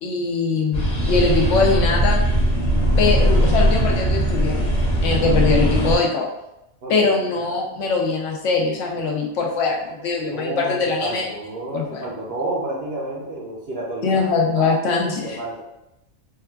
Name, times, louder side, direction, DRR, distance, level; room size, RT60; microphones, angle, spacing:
voice 1, 0.0-2.2 3.0-4.7 5.0-6.3 6.9-11.3 11.7-12.0 14.0-15.4, left 4 dB, 70° left, -1 dB, 0.9 m, -22 dB
sound 1, 0.7-6.0, right 1 dB, 35° left, 0.9 m, -19 dB
voice 2, 6.8-7.5 10.3-14.2 14.6-14.7 15.2-15.6, right 1 dB, 60° right, -3 dB, 0.7 m, -30 dB
3.6 x 2.3 x 2.2 m, 0.88 s
omnidirectional pair, 1.4 m